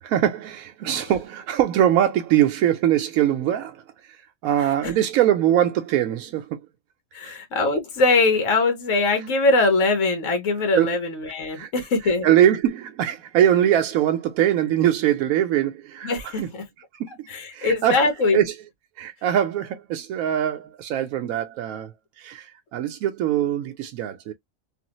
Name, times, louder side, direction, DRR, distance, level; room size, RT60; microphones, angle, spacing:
voice 1, 0.0-6.6 7.2-7.4 10.7-11.0 11.5-11.7 12.0-16.5 17.0-17.3 17.5-18.1 18.3-18.5 19.0-24.3, right 11 dB, 85° right, 1.0 m, -22 dB
voice 2, 7.1-12.3 16.0-16.6 17.3-18.4, left 3 dB, 65° left, 1.4 m, -22 dB
3.3 x 2.3 x 3.0 m
omnidirectional pair, 1.4 m